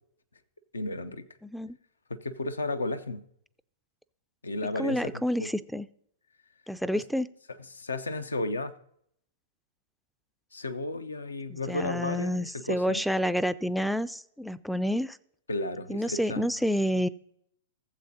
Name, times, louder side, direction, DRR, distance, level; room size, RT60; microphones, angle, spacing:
voice 1, 0.7-1.3 2.1-3.2 4.4-5.5 6.9-7.0 7.6-8.7 10.5-13.0 15.5-16.6, left 2 dB, 85° left, 11 dB, 0.6 m, -33 dB
voice 2, 1.4-1.8 4.8-5.9 6.7-7.3 11.5-15.2 15.9-17.1, equal, ahead, 16 dB, 0.3 m, -29 dB
15.5 x 7.5 x 2.7 m, 0.70 s
hypercardioid pair, 110°, 0 cm